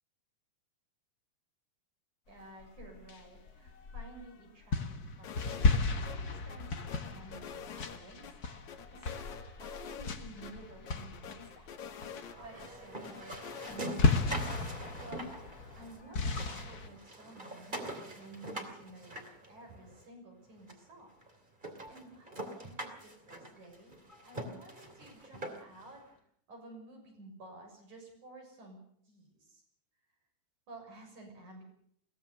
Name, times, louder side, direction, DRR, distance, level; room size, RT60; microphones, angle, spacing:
voice 1, 2.3-8.6 8.9-11.7 12.4-14.5 15.0-15.3 15.7-21.1 21.9-24.0 24.2-26.1 26.5-29.6 30.7-31.6, right 2 dB, 65° right, 1 dB, 8.1 m, -53 dB
sound 1, 2.6-4.3 4.7-11.7 12.0-12.5 12.8-13.0 13.3-16.9, left 3 dB, 40° left, 1.5 m, -34 dB
sound 2, 5.2-5.8 6.0-6.2 6.5-8.3 8.7-10.2 10.4-10.5 10.9-12.7 13.0-13.8, left 7 dB, 70° left, 2.8 m, -46 dB
sound 3, 12.3-16.0 16.3-20.0 20.7-20.8 21.2-21.3 21.6-25.9, right 1 dB, 15° right, 2.7 m, -43 dB
22.5 x 17.5 x 6.6 m, 0.65 s
omnidirectional pair, 3.6 m